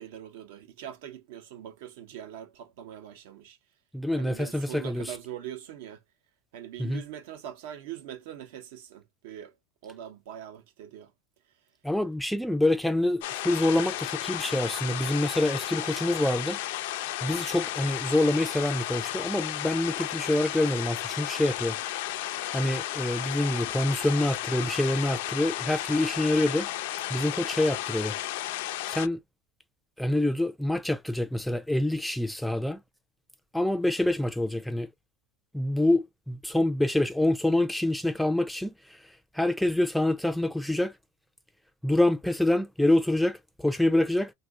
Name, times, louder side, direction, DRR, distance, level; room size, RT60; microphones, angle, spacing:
voice 1, 0.0-3.6 4.2-6.0 6.5-9.5 9.8-11.1, right 11 dB, 75° right, 0.8 m, -42 dB
voice 2, 3.9-5.1 6.8-7.0 11.8-16.6 17.2-21.8 22.1-22.2 22.5-26.7 27.1-28.2 28.9-29.2 30.0-32.8 33.5-34.9 35.5-39.0 39.3-40.9 41.8-44.3, left 1 dB, ahead, 0.3 m, -26 dB
sound 1, 13.2-29.1, left 14 dB, 75° left, 0.4 m, -33 dB
2.7 x 2.5 x 3.5 m
supercardioid pair, 150°, 0 cm